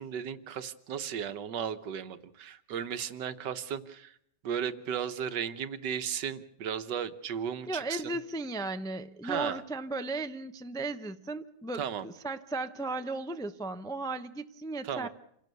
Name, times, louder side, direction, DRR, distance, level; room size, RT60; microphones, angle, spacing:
voice 1, 0.0-4.1 4.4-8.2 9.2-9.6 11.8-12.1 14.8-15.1, right 8 dB, 85° right, 11 dB, 1.7 m, -35 dB
voice 2, 7.7-15.1, right 2 dB, 5° left, 9 dB, 0.4 m, -36 dB
27.5 x 17.0 x 6.8 m, 0.74 s
omnidirectional pair, 1.8 m